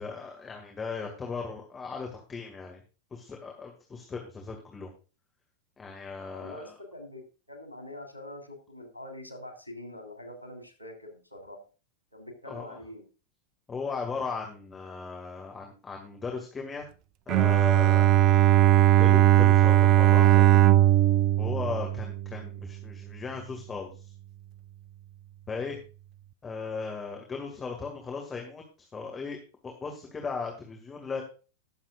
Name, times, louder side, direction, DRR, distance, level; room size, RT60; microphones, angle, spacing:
voice 1, 0.0-2.8 3.1-4.9 5.8-6.7 12.5-12.8 13.7-16.9 17.3-18.0 19.0-20.6 21.4-24.1 25.5-25.8 26.4-29.4 29.6-31.2, left 4 dB, 20° left, 2 dB, 2.1 m, -37 dB
voice 2, 6.3-11.6 12.1-13.0, left 1 dB, 90° right, 5 dB, 2.9 m, -44 dB
Bowed string instrument, 17.3-22.6, right 13 dB, 40° right, 0.4 m, -19 dB
19.5 x 7.3 x 2.5 m, 0.35 s
figure-of-eight pair, 90°, 0 cm